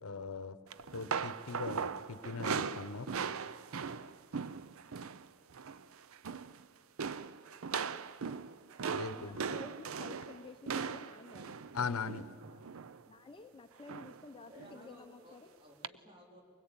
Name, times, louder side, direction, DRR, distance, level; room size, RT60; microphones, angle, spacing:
voice 1, 0.0-0.6 0.9-3.1 8.9-9.4 11.7-12.3, left 5 dB, 90° left, 15 dB, 0.8 m, -40 dB
sound 1, 0.7-5.3 5.5-5.8 6.1-6.6 7.0-13.0 13.9-14.3 14.6-14.8 15.8-15.9, right 6 dB, 70° right, 0.6 m, -39 dB
voice 2, 8.9-11.6 13.1-15.5, left 3 dB, 25° left, 7 dB, 0.7 m, -52 dB
voice 3, 14.5-16.4, equal, 25° right, 0 dB, 3.9 m, -56 dB
23.0 x 20.5 x 8.9 m, 2.3 s
head